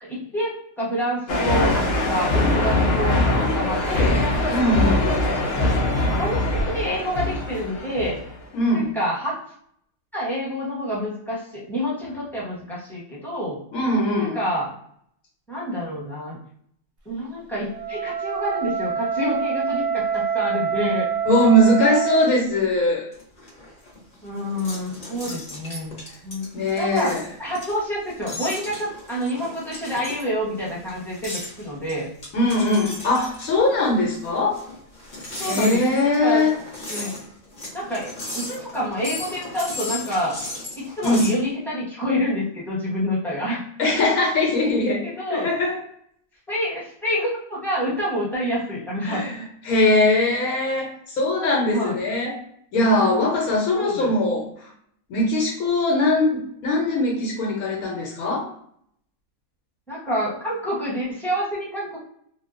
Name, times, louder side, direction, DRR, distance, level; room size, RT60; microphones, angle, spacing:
voice 1, 0.0-1.7 2.1-4.2 5.2-5.4 6.2-8.2 8.7-9.4 10.1-13.6 14.3-14.7 15.5-16.4 17.0-21.1 24.2-26.5 26.8-32.1 35.4-35.8 36.2-36.5 36.9-37.2 37.7-40.4 40.7-43.6 45.0-45.5 46.5-49.3 51.7-52.0 53.8-54.1 59.9-62.0, equal, ahead, -8 dB, 0.8 m, -27 dB
sound 1, 1.3-8.4, left 2 dB, 65° left, 0.7 m, -22 dB
voice 2, 4.5-5.2 8.5-8.9 13.7-14.4 21.2-23.1 26.5-27.2 32.3-34.6 35.4-36.5 41.0-41.3 43.8-45.8 49.0-52.4 52.7-54.5 55.1-58.5, left 1 dB, 85° left, -2 dB, 1.2 m, -21 dB
Wind instrument woodwind instrument, 17.7-22.3, right 7 dB, 60° right, 0.7 m, -26 dB
sound 2, 23.1-41.4, left 2 dB, 40° left, 0.9 m, -36 dB
2.8 x 2.3 x 2.5 m, 0.67 s
omnidirectional pair, 1.5 m